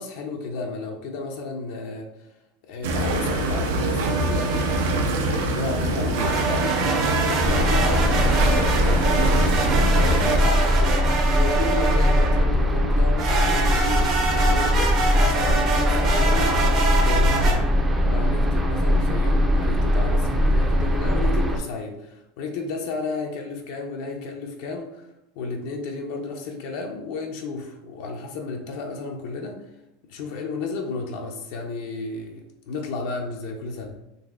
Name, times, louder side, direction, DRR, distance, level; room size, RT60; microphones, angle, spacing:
voice 1, 0.0-2.3 2.7-4.7 5.1-9.6 9.9-29.6 30.1-34.0, left 3 dB, 70° left, 2 dB, 0.5 m, -33 dB
sound 1, 2.8-10.4, right 2 dB, 75° right, 0.5 m, -24 dB
sound 2, 4.0-5.0 6.1-12.5 13.2-17.5, right 3 dB, 45° right, 0.8 m, -26 dB
sound 3, 7.4-21.6, equal, 15° right, 0.4 m, -21 dB
3.9 x 2.7 x 2.4 m, 0.88 s
supercardioid pair, 120°, 0 cm